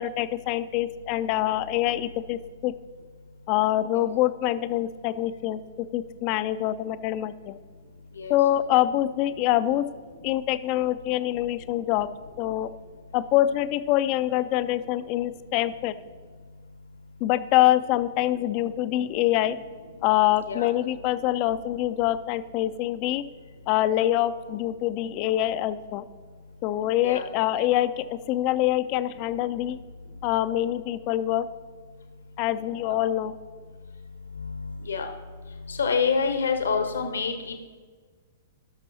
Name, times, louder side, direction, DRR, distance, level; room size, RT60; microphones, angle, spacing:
voice 1, 0.0-2.7 3.5-5.6 5.9-7.6 8.3-9.9 10.2-12.1 12.4-12.7 13.1-15.9 17.2-19.6 20.0-23.2 23.7-26.0 26.6-29.8 30.2-31.5 32.4-33.4, left 14 dB, 40° left, 13 dB, 0.5 m, -25 dB
voice 2, 34.4-35.1 35.7-37.6, left 5 dB, 75° left, 6 dB, 1.0 m, -27 dB
17.5 x 6.1 x 2.8 m, 1.5 s
figure-of-eight pair, 110°, 0 cm